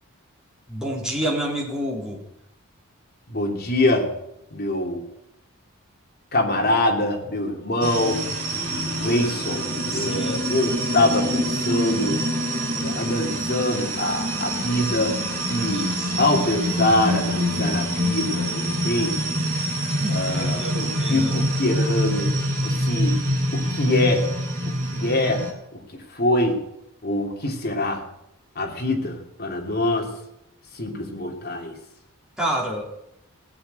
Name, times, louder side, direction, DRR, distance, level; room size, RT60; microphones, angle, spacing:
voice 1, 0.7-2.2 9.9-10.6 16.0-16.2 19.9-21.3 32.4-32.9, right 1 dB, 5° right, -2 dB, 3.3 m, -29 dB
voice 2, 3.3-4.1 4.5-5.1 6.3-8.2 8.9-12.2 12.7-15.2 15.5-15.9 16.2-19.4 20.1-22.3 22.6-23.2 23.5-24.3 24.9-25.4 25.7-26.6 27.0-28.0 28.5-30.1 30.7-31.7, left 1 dB, 45° left, 1 dB, 3.0 m, -24 dB
sound 1, 7.8-25.5, equal, 40° right, 3.5 m, -25 dB
17.5 x 7.7 x 9.1 m, 0.82 s
head